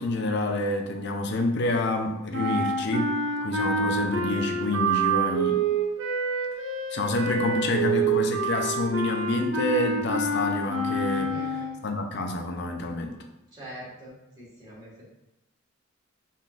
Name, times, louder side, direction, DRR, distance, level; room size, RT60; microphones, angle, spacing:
voice 1, 0.0-3.2 3.4-5.7 6.9-11.4 11.8-13.1, left 2 dB, 50° left, 4 dB, 0.6 m, -28 dB
sound 1, 2.3-11.9, right 3 dB, 60° right, 0.8 m, -27 dB
voice 2, 11.1-11.7 13.5-14.9, equal, 20° right, -6 dB, 1.6 m, -43 dB
5.6 x 3.7 x 2.5 m, 0.91 s
head